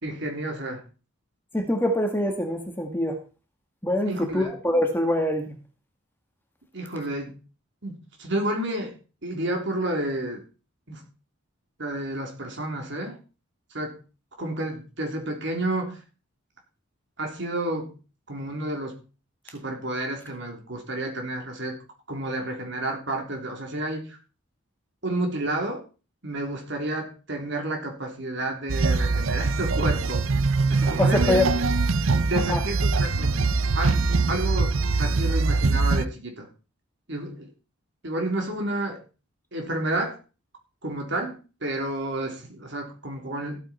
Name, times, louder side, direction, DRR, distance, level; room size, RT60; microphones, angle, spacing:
voice 1, 0.0-0.8 4.0-4.5 6.7-7.4 7.8-9.0 9.2-10.4 10.9-11.0 11.8-13.2 13.7-14.0 14.4-16.0 17.2-17.9 18.3-18.9 19.4-21.8 22.1-24.2 25.0-25.8 26.2-30.2 30.7-31.4 32.3-33.3 33.7-34.0 34.3-36.5 37.1-37.5 38.0-39.0 39.5-40.2 40.8-43.6, right 1 dB, 55° right, 3 dB, 3.5 m, -30 dB
voice 2, 1.5-3.2 3.8-5.6 30.8-31.5 32.5-32.6, left 1 dB, 10° left, 4 dB, 1.9 m, -24 dB
sound 1, 28.7-36.0, right 3 dB, 75° right, 0.7 m, -23 dB
14.5 x 8.9 x 4.4 m, 0.33 s
head